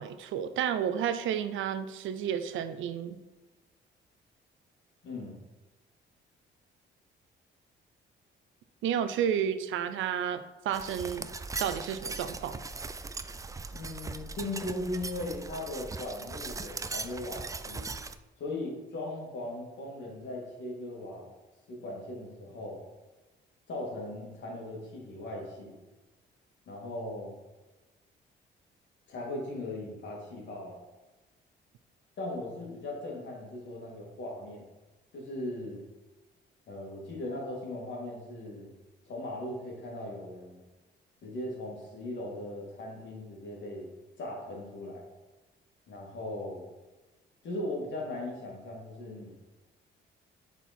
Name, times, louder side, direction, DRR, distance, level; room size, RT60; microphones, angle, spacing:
voice 1, 0.0-3.2 8.8-11.3 11.6-12.6, right 9 dB, 80° right, 11 dB, 0.6 m, -31 dB
voice 2, 5.0-5.4 13.7-17.9 18.4-21.3 21.7-22.8 23.7-25.8 26.7-27.3 29.1-30.8 32.2-34.7 35.1-35.8 36.7-38.7 39.1-40.6 41.2-43.9 44.2-45.1 45.9-46.7 47.4-49.3, left 1 dB, 65° left, -2 dB, 2.5 m, -38 dB
sound 1, 10.7-18.2, right 3 dB, 15° right, 0.4 m, -39 dB
7.0 x 4.6 x 4.3 m, 1.1 s
cardioid pair, 90°, 20 cm